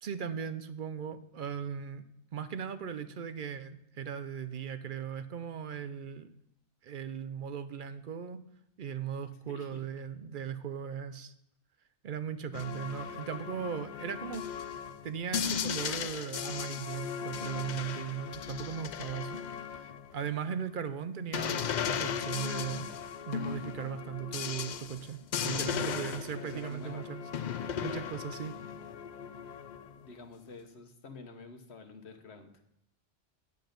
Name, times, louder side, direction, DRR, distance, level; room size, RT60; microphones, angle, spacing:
voice 1, 0.0-2.0 2.3-6.3 6.8-8.4 8.8-11.3 12.0-14.5 15.0-19.4 19.8-22.9 23.3-27.2 27.8-28.6, right 8 dB, 55° right, 12 dB, 0.7 m, -38 dB
voice 2, 9.5-9.8 25.5-26.0 26.4-27.1 30.0-32.7, left 4 dB, 70° left, 6 dB, 1.3 m, -48 dB
sound 1, 12.5-20.2 21.3-30.1, left 8 dB, 55° left, 0.5 m, -37 dB
9.3 x 7.9 x 5.2 m, 0.79 s
omnidirectional pair, 1.1 m